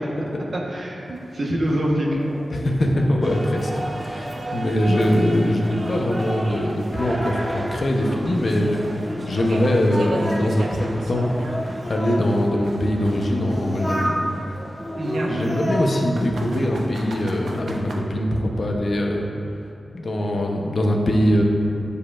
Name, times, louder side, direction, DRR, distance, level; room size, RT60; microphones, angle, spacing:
voice 1, 0.5-2.2 15.0-15.4, equal, 55° right, -2 dB, 1.2 m, -25 dB
sound 1, 1.2-1.3 1.7-1.8 2.2-2.3 2.8-2.9 3.4-3.5 3.9-4.0 4.5-7.0 7.3-11.9 12.2-14.3 15.1-18.0, right 1 dB, 85° right, 0.7 m, -37 dB
Singing, 2.1-6.6 6.9-9.3 9.6-12.3 12.9-14.2 14.8-16.8 17.1-17.7, equal, 10° left, 1.4 m, -33 dB
voice 2, 2.5-3.7 4.0-11.3 11.8-14.1 15.3-19.3 19.9-21.4, left 1 dB, 55° left, 0 dB, 0.8 m, -22 dB
sound 2, 3.2-15.9, right 2 dB, 25° right, 0.4 m, -36 dB
10.0 x 6.7 x 2.5 m, 2.8 s
wide cardioid pair, 120°, 0 cm